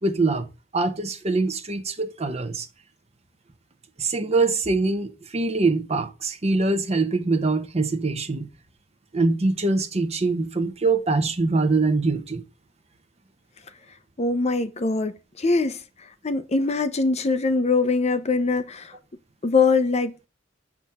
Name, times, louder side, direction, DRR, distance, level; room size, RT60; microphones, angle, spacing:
voice 1, 0.0-0.5 0.7-2.7 4.0-8.5 9.1-12.4, right 3 dB, 35° right, 0.9 m, -23 dB
voice 2, 14.2-15.8 16.2-18.9 19.4-20.3, left 3 dB, 35° left, 0.6 m, -22 dB
7.1 x 5.9 x 3.5 m
head